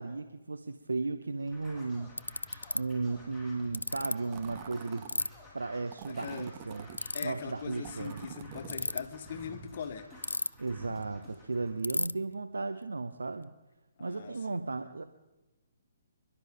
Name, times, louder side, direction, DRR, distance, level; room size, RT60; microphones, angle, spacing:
voice 1, 0.0-2.1 2.7-5.1 5.5-6.9 7.2-8.2 10.6-13.5 14.0-15.0, right 3 dB, 80° right, 9 dB, 0.7 m, -35 dB
Scratching (performance technique), 1.4-11.7, left 1 dB, 5° right, 6.8 m, -52 dB
Ratchet pawl, 1.5-1.6 2.2-2.8 3.7-4.1 5.1-5.3 6.9-7.2 8.6-9.0 10.2-10.7 11.0-11.1 11.3-11.4 11.8-12.1, left 2 dB, 85° left, 0.4 m, -31 dB
sound 1, 4.3-5.2 5.9-7.0 7.8-9.0, right 9 dB, 35° right, 0.9 m, -46 dB
voice 2, 6.1-6.5 7.1-10.1 14.0-14.6, left 6 dB, 50° left, 8 dB, 1.4 m, -41 dB
26.5 x 12.0 x 3.8 m, 1.0 s
figure-of-eight pair, 135°, 0 cm